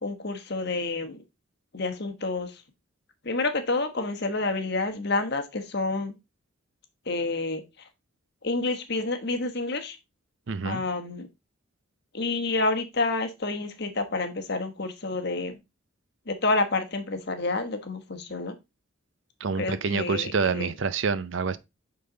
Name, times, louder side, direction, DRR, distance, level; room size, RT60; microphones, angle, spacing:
voice 1, 0.0-1.2 1.7-2.6 3.2-6.1 7.1-7.6 8.4-10.0 10.6-11.3 12.1-15.6 16.3-18.6 19.6-20.7, left 3 dB, 50° left, 1.1 m, -29 dB
voice 2, 10.5-10.8 19.4-21.6, right 5 dB, 60° right, 0.5 m, -27 dB
8.5 x 4.0 x 3.8 m
head